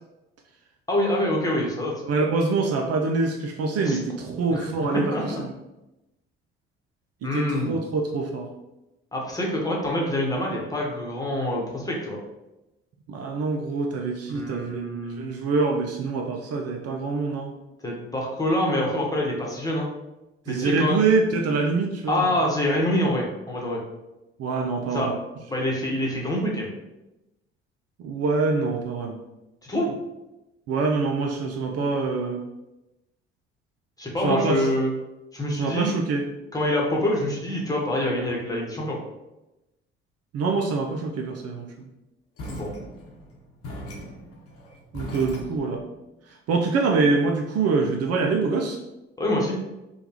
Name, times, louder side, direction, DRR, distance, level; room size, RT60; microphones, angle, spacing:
voice 1, 0.9-1.9 3.9-4.0 4.5-4.6 4.9-5.4 7.2-7.8 9.1-12.2 14.3-15.3 17.8-19.9 20.5-21.0 22.1-23.8 24.9-25.1 25.5-26.7 29.6-29.9 34.0-34.9 35.3-35.9 36.5-39.0 42.5-42.7 49.2-49.6, left 1 dB, 10° left, -3 dB, 1.1 m, -26 dB
voice 2, 2.0-5.5 7.2-8.5 13.1-14.8 15.2-17.5 20.5-22.3 24.4-25.2 28.0-29.2 30.7-32.5 34.2-34.7 35.6-36.2 40.3-41.9 44.9-45.8 46.5-48.8, right 4 dB, 50° right, 2 dB, 0.5 m, -25 dB
sound 1, 42.4-45.9, equal, 50° left, 1.0 m, -39 dB
3.5 x 2.3 x 2.9 m, 0.96 s
hypercardioid pair, 50°, 31 cm